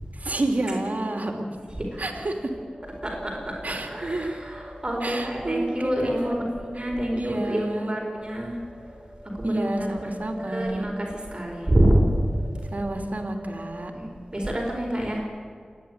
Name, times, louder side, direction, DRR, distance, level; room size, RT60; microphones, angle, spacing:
voice 1, 0.2-1.4 2.0-2.5 3.6-4.4 5.0-6.3 7.1-7.9 9.4-10.9 12.7-13.9, right 2 dB, 70° right, 3 dB, 2.7 m, -29 dB
sound 1, 2.5-14.0, equal, 60° left, 4.9 m, -44 dB
voice 2, 3.0-8.6 9.3-10.1 10.4-12.1 13.9-15.2, right 1 dB, 35° right, -1 dB, 5.1 m, -27 dB
27.5 x 10.5 x 10.0 m, 2.2 s
wide cardioid pair, 50°, 3 cm